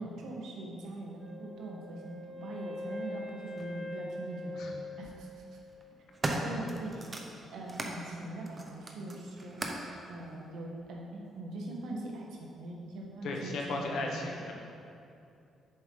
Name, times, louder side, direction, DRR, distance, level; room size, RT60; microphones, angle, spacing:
voice 1, 0.0-5.3 6.4-7.1 7.5-9.6 10.1-14.3, right 2 dB, 80° right, -1 dB, 1.3 m, -42 dB
Wind instrument woodwind instrument, 1.2-6.0, left 2 dB, 5° right, 1.8 m, -43 dB
sound 1, 3.6-3.7 4.8-5.1 5.7-8.0 8.4-9.9 10.8-10.9, right 2 dB, 30° right, 0.9 m, -38 dB
voice 2, 13.2-14.5, left 2 dB, 75° left, 0 dB, 1.2 m, -35 dB
7.8 x 7.0 x 3.9 m, 2.6 s
cardioid pair, 90°, 0 cm